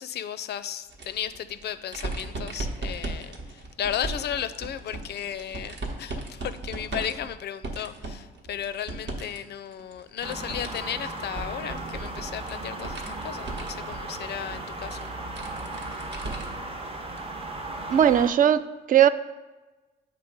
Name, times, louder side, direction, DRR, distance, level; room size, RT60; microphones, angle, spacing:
voice 1, 0.0-15.1, left 9 dB, 55° left, 13 dB, 0.4 m, -34 dB
sound 1, 0.9-9.4 9.7-16.7 17.1-17.2 18.4-18.5, right 2 dB, 60° right, 1.0 m, -37 dB
sound 2, 10.2-18.3, right 2 dB, 30° right, 0.7 m, -36 dB
voice 2, 17.9-19.1, right 10 dB, 45° right, 13 dB, 0.4 m, -19 dB
7.4 x 3.3 x 5.1 m, 1.2 s
cardioid pair, 90°, 20 cm